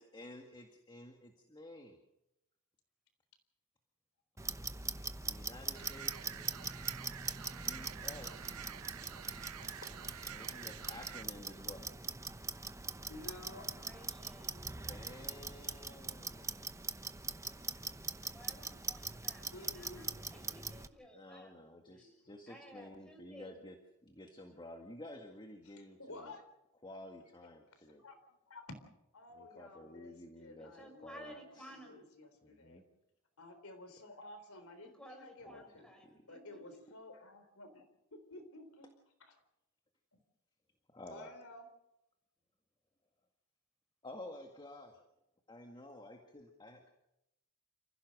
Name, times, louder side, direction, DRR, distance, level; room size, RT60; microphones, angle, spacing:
voice 1, 0.0-2.0 5.2-6.6 7.5-8.6 10.3-11.9 14.9-16.9 20.2-20.8 21.1-26.3 26.8-28.0 29.3-31.8 32.4-32.8 35.4-35.6 36.0-36.2 40.9-41.3 44.0-45.1 45.5-46.9, left 1 dB, 20° left, 4 dB, 1.9 m, -52 dB
Clock, 4.4-20.9, right 4 dB, 15° right, 0.8 m, -42 dB
sound 1, 5.8-11.2, right 10 dB, 90° right, 0.7 m, -49 dB
voice 2, 9.5-9.9 11.0-11.1 13.1-13.7 19.5-20.1 21.8-22.3 25.6-26.4 27.8-28.2 28.5-28.7 29.1-32.8 33.4-35.9 36.3-37.8 38.1-38.9 39.2-39.4 41.1-41.7, left 2 dB, 70° left, 8 dB, 3.8 m, -53 dB
voice 3, 13.6-14.7 18.3-19.5 19.7-21.5 21.9-22.1 22.5-23.6 30.6-32.1 34.8-36.6, equal, 5° left, 3 dB, 5.2 m, -56 dB
29.0 x 16.0 x 6.5 m, 0.87 s
head